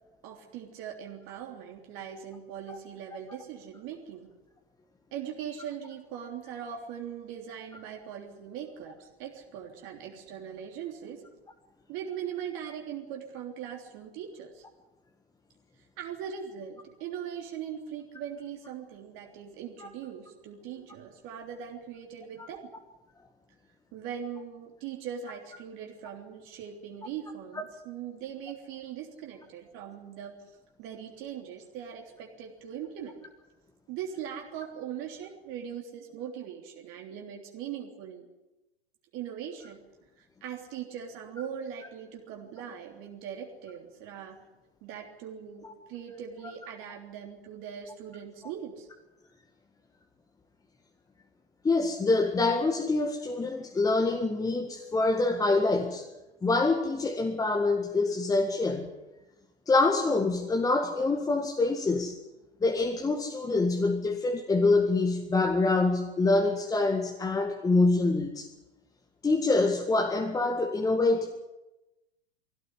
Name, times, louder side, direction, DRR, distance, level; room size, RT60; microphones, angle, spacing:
voice 1, 0.2-4.3 5.1-11.2 11.9-14.6 16.0-22.7 23.9-30.4 30.8-33.2 33.9-38.3 39.1-39.8 40.2-44.4 44.8-48.9, right 8 dB, 40° right, 1 dB, 3.3 m, -40 dB
voice 2, 51.6-56.0 56.4-58.9 59.7-62.2 62.6-68.5 69.2-71.4, left 3 dB, 10° left, 2 dB, 1.9 m, -25 dB
21.5 x 16.5 x 9.8 m, 1.0 s
figure-of-eight pair, 105°, 32 cm